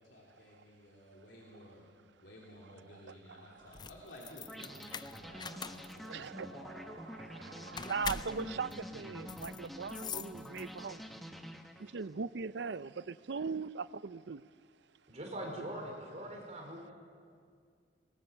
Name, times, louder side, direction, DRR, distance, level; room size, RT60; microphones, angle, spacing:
voice 1, 0.0-1.9 2.2-6.9 7.3-9.3, equal, 75° left, 3.0 m, -53 dB
sound 1, 3.6-11.0, left 6 dB, 25° left, 0.5 m, -44 dB
sound 2, 4.5-12.2, equal, ahead, 1.1 m, -47 dB
voice 2, 4.9-5.7 6.0-11.0 11.8-14.5, right 5 dB, 65° right, 0.5 m, -40 dB
voice 3, 15.1-16.9, right 1 dB, 35° right, 4.6 m, -42 dB
25.0 x 20.5 x 6.8 m
head